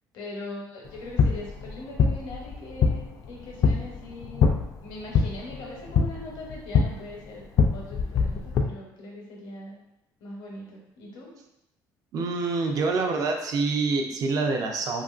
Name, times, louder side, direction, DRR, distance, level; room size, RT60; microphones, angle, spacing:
voice 1, 0.1-4.5 4.8-9.8 10.2-11.3, left 2 dB, 80° left, -2 dB, 0.8 m, -40 dB
sound 1, 0.8-8.6, left 5 dB, 55° left, 0.3 m, -25 dB
voice 2, 12.1-15.0, right 4 dB, 55° right, 3 dB, 0.4 m, -26 dB
2.9 x 2.5 x 2.4 m, 0.87 s
cardioid pair, 120°, 7 cm